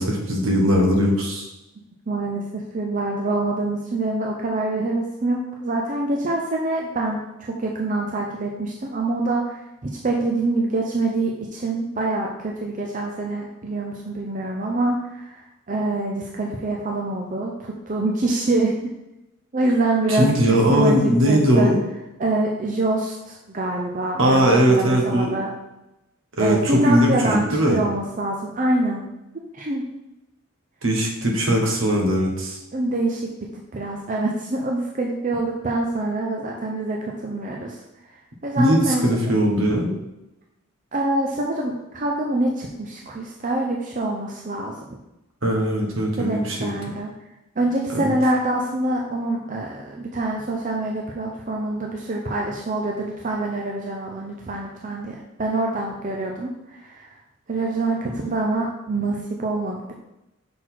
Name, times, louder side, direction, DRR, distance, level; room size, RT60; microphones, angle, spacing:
voice 1, 0.0-1.5 20.1-21.8 24.2-25.3 26.4-27.8 30.8-32.6 38.6-39.9 45.4-46.7 47.9-48.1, equal, 70° right, 0 dB, 1.4 m, -19 dB
voice 2, 2.1-18.7 19.5-21.7 22.2-25.5 26.4-29.0 29.5-29.8 32.7-37.8 38.4-39.4 40.9-45.0 46.2-47.1 47.6-57.2 57.5-59.9, right 2 dB, 40° right, 0 dB, 0.6 m, -25 dB
6.2 x 4.0 x 4.5 m, 0.94 s
head